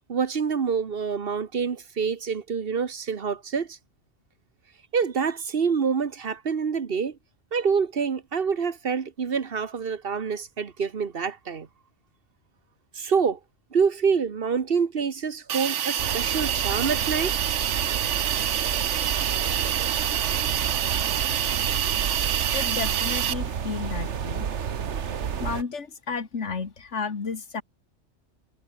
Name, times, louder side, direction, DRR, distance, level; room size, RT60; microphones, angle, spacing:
voice 1, 0.1-3.8 4.9-7.2 7.5-11.7 12.9-13.4 13.7-17.4, right 6 dB, 55° right, 1.3 m, -26 dB
Hiss, 15.5-23.3, right 10 dB, 90° right, 1.2 m, -27 dB
sound 1, 16.0-25.6, right 7 dB, 75° right, 1.4 m, -31 dB
voice 2, 22.5-24.5 25.4-27.6, left 5 dB, 85° left, 2.2 m, -32 dB
omnidirectional pair, 1.2 m